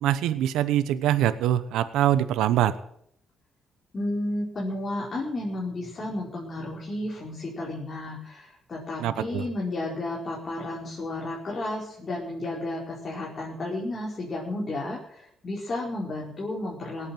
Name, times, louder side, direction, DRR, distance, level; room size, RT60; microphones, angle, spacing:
voice 1, 0.0-2.7 9.0-9.4, right 12 dB, 90° right, 12 dB, 0.9 m, -24 dB
voice 2, 3.9-17.1, left 2 dB, 40° left, -4 dB, 5.0 m, -32 dB
18.0 x 8.6 x 7.8 m, 0.68 s
cardioid pair, 90°, 0 cm